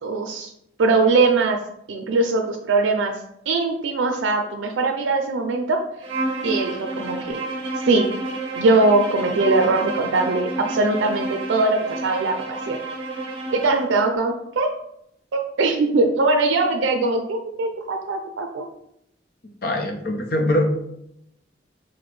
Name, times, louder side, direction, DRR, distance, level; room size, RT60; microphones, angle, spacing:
voice 1, 0.0-0.5 0.8-1.6 1.9-3.2 3.5-5.8 6.4-7.4 7.9-8.1 8.5-12.8 13.5-14.7 15.3-18.7, right 3 dB, 85° right, 4 dB, 0.4 m, -21 dB
Bowed string instrument, 6.0-13.9, right 2 dB, 30° right, 1.1 m, -30 dB
voice 2, 19.6-20.7, left 1 dB, 55° left, 4 dB, 0.6 m, -22 dB
5.9 x 2.1 x 3.2 m, 0.76 s
head